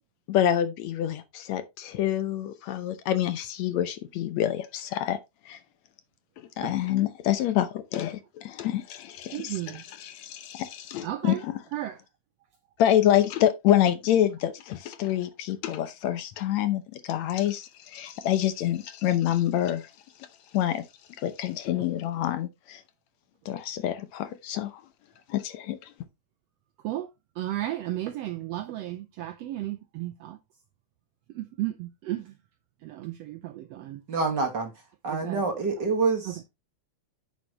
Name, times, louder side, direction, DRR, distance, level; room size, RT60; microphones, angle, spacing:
voice 1, 0.3-5.2 5.5-5.6 6.6-11.6 12.8-19.9 20.5-20.9 21.2-22.8 23.5-24.8 25.3-25.9, left 11 dB, 70° left, 1.9 m, -27 dB
voice 2, 9.3-9.8 11.0-11.4 11.7-12.0 26.8-27.1 27.4-30.4 31.3-32.3 32.8-34.0 35.1-35.4 36.2-36.3, right 14 dB, 85° right, 1.5 m, -34 dB
voice 3, 34.1-34.7 35.0-36.5, right 4 dB, 45° right, 1.6 m, -27 dB
10.0 x 6.3 x 2.9 m
omnidirectional pair, 3.5 m